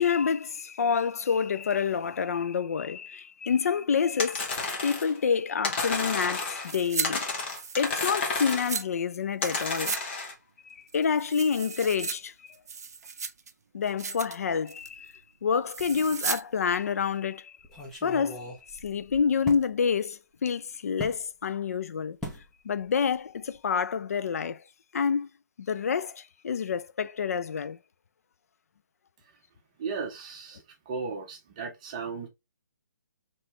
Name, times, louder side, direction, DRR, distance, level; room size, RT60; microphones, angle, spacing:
voice 1, 0.0-7.3 7.8-10.0 10.6-12.3 13.7-15.1 15.4-22.2 22.6-24.6 24.9-25.3 25.6-27.8, left 6 dB, 55° left, 0.4 m, -28 dB
sound 1, 4.2-5.2 5.6-6.7 7.0-8.8 9.4-10.3, left 3 dB, 35° left, 1.1 m, -31 dB
sound 2, 6.6-7.1 7.4-8.8 9.4-10.0 10.3-10.4 10.9-12.1 12.5-13.5 13.9-14.4 14.7-15.0 15.7-16.4 16.7-16.8, right 5 dB, 55° right, 0.5 m, -35 dB
sound 3, 15.8-16.4 16.7-16.8 17.6-19.7 21.0-21.2 22.2-22.5 22.8-23.1 23.4-23.6, left 1 dB, 5° left, 0.5 m, -40 dB
voice 2, 29.8-30.6 30.9-32.3, right 5 dB, 20° right, 0.8 m, -35 dB
4.1 x 3.2 x 3.1 m
hypercardioid pair, 170°, 10 cm